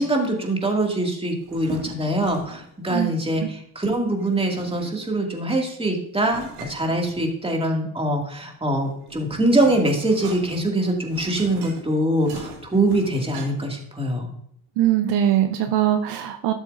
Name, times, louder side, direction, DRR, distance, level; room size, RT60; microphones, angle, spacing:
voice 1, 0.0-14.3, right 1 dB, 10° right, 1 dB, 2.3 m, -23 dB
sound 1, 1.4-2.7 4.2-5.2 6.2-7.6 8.7-13.8, right 2 dB, 90° right, 2.2 m, -40 dB
voice 2, 14.8-16.5, right 11 dB, 60° right, 7 dB, 0.8 m, -21 dB
12.5 x 7.3 x 2.6 m, 0.69 s
supercardioid pair, 75°, 47 cm